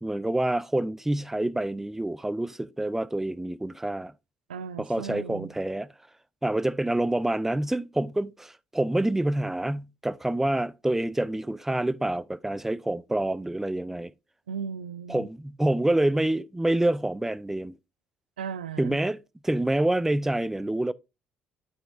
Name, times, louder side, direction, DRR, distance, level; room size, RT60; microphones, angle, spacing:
voice 1, 0.0-4.1 4.8-5.9 6.4-14.1 15.1-17.7 18.8-20.9, right 1 dB, 5° right, 0.4 m, -27 dB
voice 2, 4.5-5.5 14.5-15.3 18.4-19.0, right 7 dB, 90° right, 0.3 m, -36 dB
8.8 x 5.1 x 2.5 m
hypercardioid pair, 50°, 5 cm